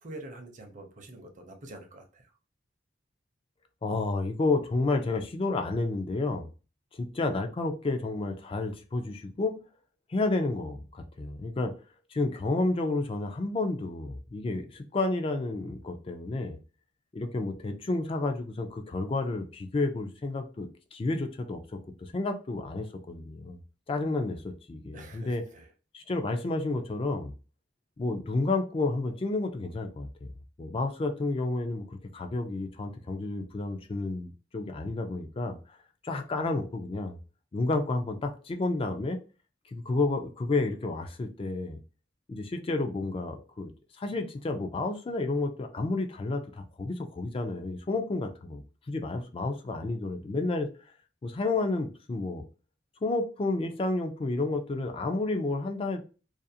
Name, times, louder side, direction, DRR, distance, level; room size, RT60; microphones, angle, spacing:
voice 1, 0.0-2.2 24.9-25.7, right 2 dB, 40° right, 4 dB, 0.6 m, -46 dB
voice 2, 3.8-6.4 6.9-9.6 10.1-11.7 12.1-16.6 17.1-23.6 23.9-25.4 25.9-27.3 28.0-30.3 30.6-35.6 36.0-37.2 37.5-39.2 39.7-41.8 42.3-43.7 44.0-50.7 51.2-52.4 53.0-56.0, left 2 dB, 30° left, 6 dB, 0.3 m, -31 dB
2.4 x 2.4 x 2.7 m, 0.34 s
head